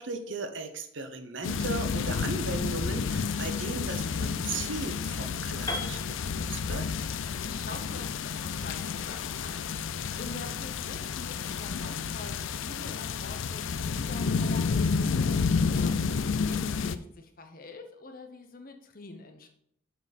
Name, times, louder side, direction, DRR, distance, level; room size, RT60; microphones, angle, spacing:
voice 1, 0.0-6.9, right 3 dB, 65° right, 7 dB, 0.9 m, -37 dB
sound 1, 1.4-17.0, left 5 dB, 70° left, 0.4 m, -30 dB
Piano, 5.7-9.6, left 1 dB, 20° left, 1.1 m, -41 dB
voice 2, 7.3-19.5, left 3 dB, 45° left, 5 dB, 1.0 m, -46 dB
7.0 x 6.1 x 4.2 m, 0.70 s
head